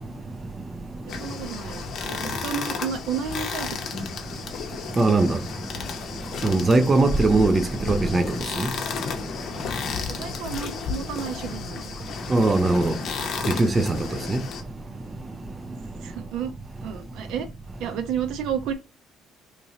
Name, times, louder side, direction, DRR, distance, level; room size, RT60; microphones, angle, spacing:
sound 1, 1.1-14.6, left 6 dB, 50° left, 0.7 m, -33 dB
voice 1, 1.1-4.3 10.1-11.8 14.1-14.3 16.0-16.5 16.8-17.5 17.8-18.7, right 8 dB, 70° right, 0.6 m, -32 dB
voice 2, 5.0-5.4 6.4-8.2 8.6-8.7 12.3-13.0 13.5-14.0 14.3-14.4, right 2 dB, 20° right, 0.3 m, -20 dB
3.7 x 2.9 x 2.9 m
cardioid pair, 155°, 0 cm